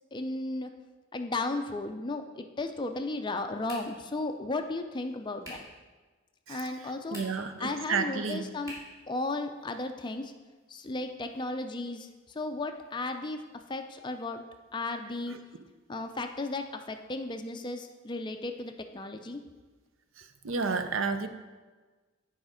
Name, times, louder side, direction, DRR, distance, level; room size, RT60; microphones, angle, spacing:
voice 1, 0.1-0.7 1.1-5.6 6.5-7.2 7.6-8.7 9.1-10.3 10.7-14.4 14.7-15.3 15.9-19.4, left 2 dB, 20° left, 6 dB, 0.4 m, -35 dB
sound 1, 3.6-4.1 5.4-5.8 7.0-7.6 8.6-9.0, equal, 15° right, 2.2 m, -45 dB
voice 2, 7.1-8.4 20.4-21.3, right 4 dB, 70° right, 9 dB, 0.6 m, -31 dB
8.6 x 5.0 x 5.0 m, 1.3 s
head